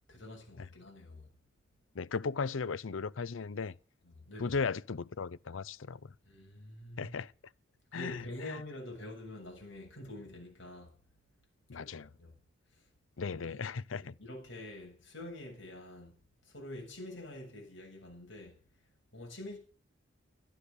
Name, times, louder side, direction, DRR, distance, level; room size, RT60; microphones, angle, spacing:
voice 1, 0.1-1.3 3.6-3.7 4.0-4.6 6.2-7.2 7.9-10.9 11.7-12.3 12.7-12.8 13.3-13.6 13.9-16.2 16.4-18.6 19.1-19.6, left 1 dB, 75° left, 7.3 m, -46 dB
voice 2, 1.9-3.7 4.4-6.1 7.0-7.3 7.9-8.6 11.7-12.1 13.2-14.1, left 5 dB, 90° left, 0.6 m, -36 dB
12.5 x 11.5 x 6.7 m
head